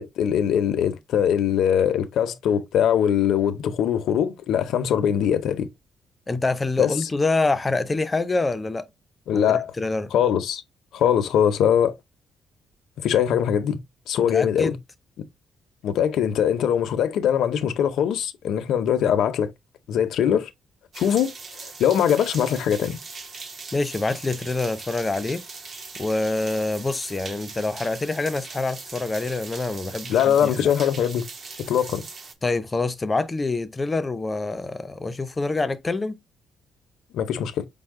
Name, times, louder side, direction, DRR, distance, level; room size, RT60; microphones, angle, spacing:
voice 1, 0.0-5.7 6.8-7.1 9.3-9.7 10.1-10.6 10.9-11.9 13.0-13.8 14.1-14.8 15.2-15.3 15.8-19.5 19.9-20.5 21.0-21.3 21.6-23.0 30.1-31.3 31.6-32.0 37.1-37.7, left 9 dB, 80° left, 0.5 m, -22 dB
voice 2, 6.3-8.8 9.3-10.1 14.3-14.8 23.7-25.4 26.0-30.7 32.4-36.2, left 3 dB, 20° left, 0.4 m, -26 dB
sound 1, 20.9-32.3, right 4 dB, 40° right, 0.8 m, -40 dB
5.4 x 2.0 x 3.5 m
cardioid pair, 145°, 0 cm